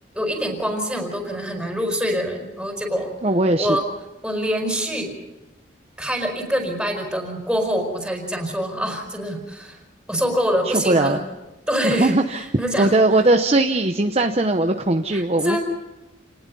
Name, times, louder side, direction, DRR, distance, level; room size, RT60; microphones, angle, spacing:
voice 1, 0.1-3.1 3.6-3.8 4.2-5.1 6.0-9.8 10.1-11.2 11.7-12.9 15.1-15.6, equal, 5° right, 1 dB, 5.0 m, -25 dB
voice 2, 3.2-3.8 10.8-11.2 11.8-12.4 12.8-15.6, right 2 dB, 35° right, 5 dB, 0.9 m, -19 dB
29.0 x 19.5 x 5.5 m, 1.0 s
head